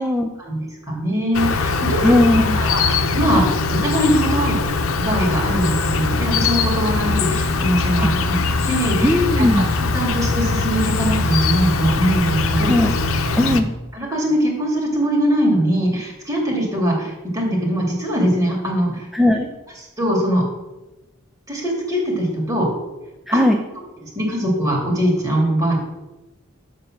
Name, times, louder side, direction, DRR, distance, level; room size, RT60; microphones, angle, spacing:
voice 1, 0.4-2.1 2.5-4.6 5.0-9.5 9.8-12.7 13.9-19.1 20.0-20.4 21.5-22.7 23.3-23.4 24.0-25.8, equal, 15° right, -2 dB, 2.7 m, -21 dB
Insect, 1.3-13.6, left 3 dB, 85° left, 0.8 m, -21 dB
voice 2, 2.0-2.6 8.0-8.1 9.0-9.7 12.7-12.9 13.4-13.7 19.1-19.5 23.3-23.6, left 1 dB, ahead, 3 dB, 0.5 m, -17 dB
7.5 x 6.8 x 6.5 m, 1.0 s
head